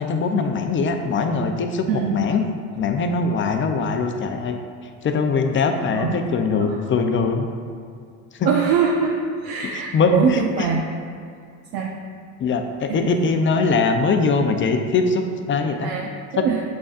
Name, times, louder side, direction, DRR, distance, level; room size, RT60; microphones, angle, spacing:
voice 1, 0.0-2.4 2.8-4.6 5.0-7.5 8.3-8.5 9.7-10.7 12.4-15.9 16.3-16.4, left 4 dB, 30° left, 5 dB, 0.6 m, -22 dB
voice 2, 8.5-9.1 9.4-10.8 11.7-11.9 12.9-13.1 15.8-16.6, right 6 dB, 60° right, 0 dB, 0.8 m, -23 dB
8.1 x 5.1 x 2.5 m, 2.3 s
supercardioid pair, 100°, 40 cm